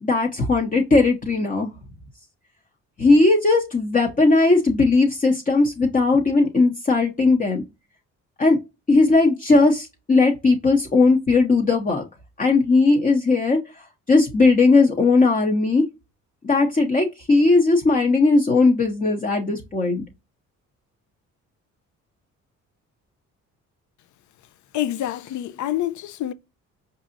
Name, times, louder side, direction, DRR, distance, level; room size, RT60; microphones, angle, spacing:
voice 1, 0.0-1.7 3.0-7.6 8.4-8.6 8.9-12.0 12.4-13.6 14.1-15.8 16.4-20.0, left 3 dB, 25° left, 0.8 m, -18 dB
voice 2, 24.7-26.3, left 12 dB, 70° left, 0.5 m, -27 dB
4.7 x 2.7 x 2.5 m
cardioid pair, 90°, 30 cm